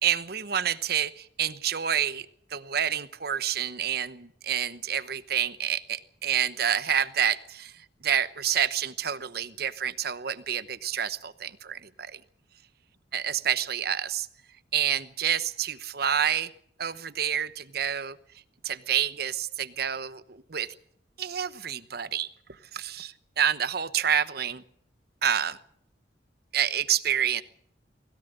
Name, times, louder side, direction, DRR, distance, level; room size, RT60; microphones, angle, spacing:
voice 1, 0.0-12.2 13.1-14.3 14.7-16.5 16.8-18.2 18.6-20.7 21.2-22.3 22.7-24.6 25.2-25.6 26.5-27.4, right 9 dB, 60° right, 14 dB, 1.0 m, -28 dB
20.5 x 17.0 x 8.0 m, 0.67 s
head